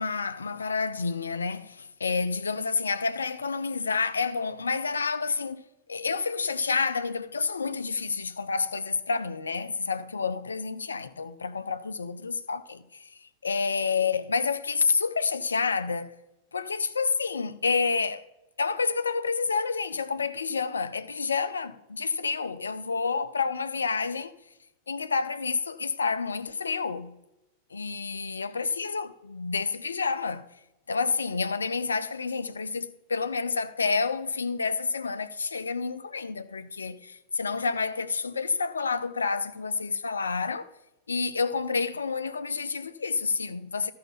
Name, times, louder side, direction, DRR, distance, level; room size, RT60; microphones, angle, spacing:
voice 1, 0.0-5.6 5.9-16.1 16.5-18.2 18.6-24.3 24.9-27.2 27.7-30.5 30.9-40.7 41.1-43.9, left 5 dB, 75° left, 0.5 m, -29 dB
13.0 x 5.6 x 5.6 m
figure-of-eight pair, 90°, 0 cm